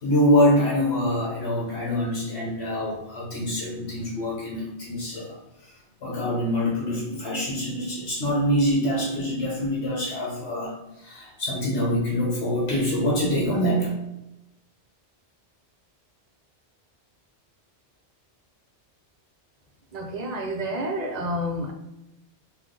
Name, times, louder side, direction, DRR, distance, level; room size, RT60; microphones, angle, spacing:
voice 1, 0.0-5.4 6.0-10.7 11.0-13.9, equal, 70° left, -3 dB, 1.2 m, -25 dB
voice 2, 19.9-21.7, equal, 50° right, 3 dB, 0.5 m, -29 dB
3.6 x 2.5 x 3.7 m, 0.93 s
omnidirectional pair, 1.2 m